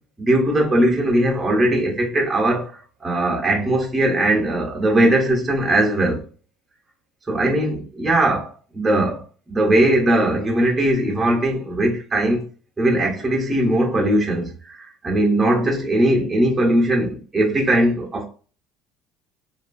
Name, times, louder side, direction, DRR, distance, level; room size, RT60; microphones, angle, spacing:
voice 1, 0.2-6.2 7.3-12.4 12.8-18.3, right 1 dB, 10° right, 0.6 m, -20 dB
2.8 x 2.2 x 2.4 m
cardioid pair, 180°, 0 cm